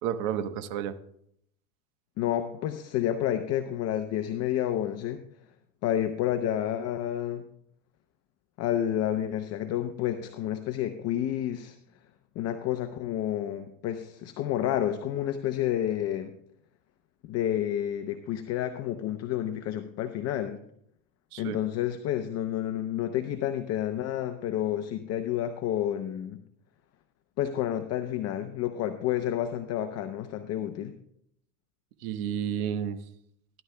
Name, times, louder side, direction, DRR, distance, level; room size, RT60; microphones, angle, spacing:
voice 1, 0.0-1.0 21.3-21.6 32.0-33.0, right 9 dB, 60° right, 10 dB, 1.1 m, -31 dB
voice 2, 2.2-5.2 5.8-7.5 8.6-11.8 12.4-16.3 17.3-20.6 21.4-26.4 27.4-30.9, left 11 dB, 35° left, 8 dB, 0.7 m, -30 dB
16.5 x 11.0 x 2.2 m, 0.71 s
supercardioid pair, 120°, 47 cm